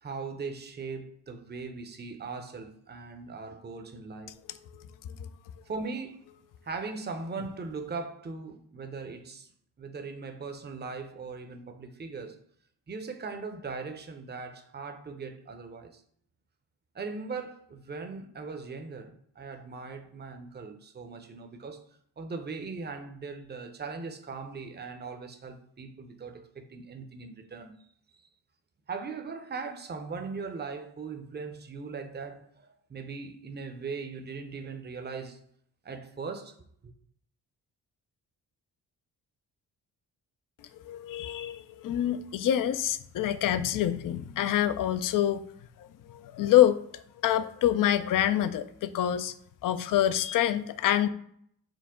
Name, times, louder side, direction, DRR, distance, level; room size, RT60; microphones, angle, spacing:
voice 1, 0.0-4.3 5.7-6.2 6.6-9.5 9.8-12.4 12.9-16.0 16.9-21.8 22.2-27.8 28.9-35.4 35.8-36.5 36.8-36.9, right 4 dB, 25° right, 0.6 m, -39 dB
voice 2, 40.8-45.4 45.8-49.3 49.6-51.1, left 11 dB, 50° left, 0.4 m, -26 dB
4.7 x 2.0 x 3.6 m
supercardioid pair, 45°, 44 cm